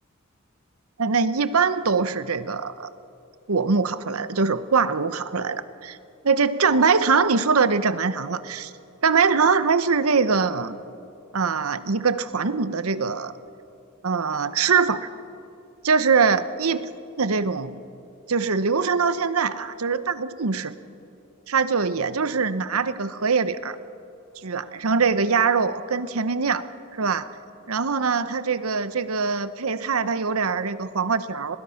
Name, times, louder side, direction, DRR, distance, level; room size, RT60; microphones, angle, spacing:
voice 1, 1.0-2.9 3.5-6.0 6.2-8.7 9.0-10.8 11.3-13.3 14.0-15.1 15.8-16.9 17.2-17.8 18.3-20.7 21.5-23.8 24.4-26.6 26.9-27.3 27.7-31.6, right 5 dB, 85° right, 13 dB, 0.9 m, -23 dB
30.0 x 21.0 x 5.8 m, 2.7 s
head